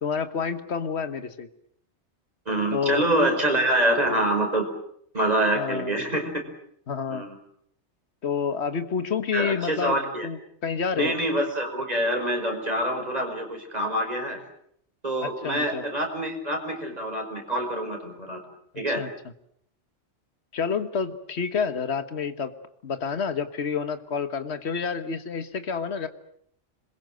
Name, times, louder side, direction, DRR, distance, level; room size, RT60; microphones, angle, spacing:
voice 1, 0.0-1.5 2.7-3.0 5.5-6.0 6.9-7.3 8.2-10.0 10.2-11.2 15.2-15.8 18.9-19.1 20.5-22.5 22.8-26.1, left 6 dB, 65° left, 10 dB, 1.7 m, -29 dB
voice 2, 2.5-4.7 5.1-6.3 7.1-7.4 9.3-10.3 11.0-14.4 15.0-18.4 18.8-19.0, right 1 dB, 35° right, 3 dB, 5.6 m, -26 dB
27.0 x 22.0 x 7.8 m, 0.69 s
omnidirectional pair, 1.2 m